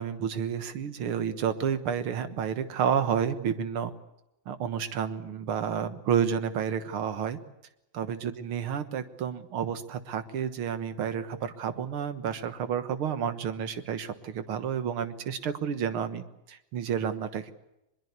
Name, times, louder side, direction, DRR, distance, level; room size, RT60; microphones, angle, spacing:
voice 1, 0.0-3.9 4.5-7.4 7.9-17.5, right 8 dB, 85° right, 11 dB, 2.3 m, -30 dB
22.5 x 22.0 x 8.2 m, 0.89 s
omnidirectional pair, 2.3 m